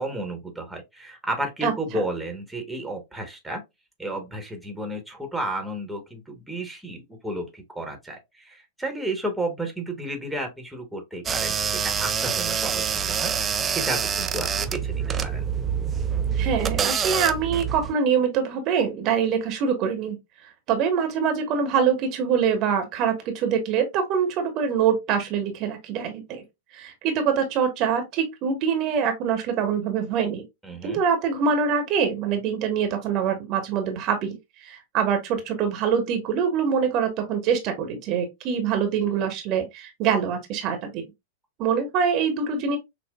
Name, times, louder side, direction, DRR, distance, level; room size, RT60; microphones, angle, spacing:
voice 1, 0.0-3.6 4.0-15.5 30.6-31.0, right 1 dB, 5° right, 1.0 m, -32 dB
sound 1, 11.3-17.9, right 7 dB, 20° right, 0.4 m, -26 dB
voice 2, 16.4-20.2 20.7-26.4 26.7-30.4 30.8-34.4 34.6-41.0 41.6-42.8, right 7 dB, 40° right, 0.9 m, -24 dB
5.9 x 2.1 x 2.3 m
figure-of-eight pair, 95°, 0 cm